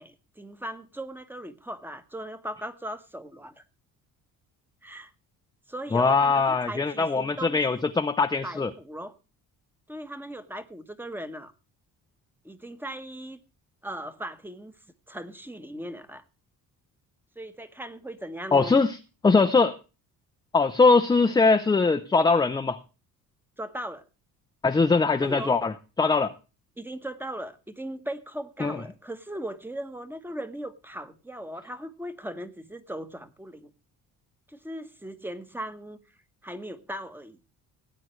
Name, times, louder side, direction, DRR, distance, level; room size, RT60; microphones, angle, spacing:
voice 1, 0.0-3.6 4.8-5.1 5.7-7.9 8.4-9.1 9.9-11.5 12.4-13.4 13.8-14.7 15.1-16.2 17.3-18.8 23.6-24.0 25.2-25.6 26.8-33.7 34.5-36.0 36.4-37.4, right 1 dB, 5° right, 11 dB, 1.0 m, -38 dB
voice 2, 5.9-8.7 18.5-19.0 19.2-19.8 20.5-22.8 24.6-26.3 28.6-28.8, left 4 dB, 10° left, 8 dB, 0.5 m, -21 dB
17.5 x 9.3 x 3.1 m, 0.31 s
cardioid pair, 145°, 37 cm